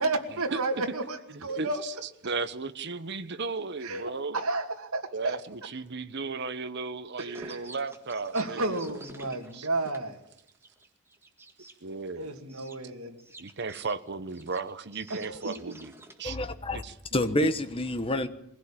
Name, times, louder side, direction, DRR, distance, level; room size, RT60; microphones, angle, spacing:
voice 1, 0.0-1.8 3.8-5.4 7.2-7.6 8.3-10.2 12.1-13.2 15.1-15.7, right 2 dB, 75° right, 2.4 m, -32 dB
voice 2, 1.4-1.9 2.2-4.4 5.1-8.8 9.5-9.7 11.8-12.3 13.4-15.9 16.2-16.4 16.7-17.5, right 4 dB, 50° right, 1.0 m, -35 dB
sound 1, 7.2-11.7 12.5-12.8 13.2-16.3, right 2 dB, 10° right, 1.8 m, -49 dB
voice 3, 16.2-16.8 17.1-18.3, left 1 dB, 25° left, 1.2 m, -28 dB
21.5 x 16.5 x 8.7 m
head